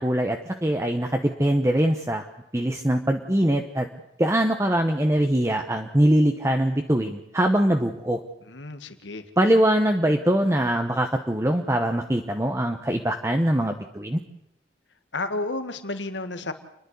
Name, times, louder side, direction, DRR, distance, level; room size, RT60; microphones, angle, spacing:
voice 1, 0.0-2.2 2.5-3.9 4.2-8.2 9.4-14.2, right 1 dB, 15° right, 4 dB, 0.9 m, -22 dB
voice 2, 8.4-9.2 15.1-16.5, left 2 dB, 80° left, 9 dB, 1.7 m, -31 dB
29.5 x 11.0 x 8.2 m, 0.82 s
head